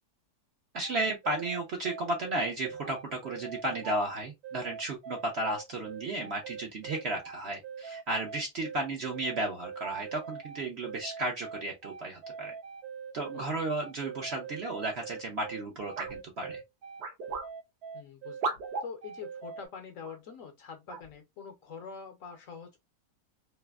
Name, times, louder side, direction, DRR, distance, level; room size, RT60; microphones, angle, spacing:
voice 1, 0.7-12.5 13.1-16.6, right 2 dB, 55° right, 0.8 m, -34 dB
sound 1, 0.8-19.7, right 6 dB, 70° right, 1.3 m, -43 dB
voice 2, 13.3-13.6 17.9-22.8, left 6 dB, 60° left, 0.9 m, -45 dB
sound 2, 16.0-16.2 17.0-17.5 18.4-18.9 20.0-20.1 20.9-21.1, right 4 dB, 85° right, 1.4 m, -34 dB
3.3 x 2.5 x 2.3 m
omnidirectional pair, 1.8 m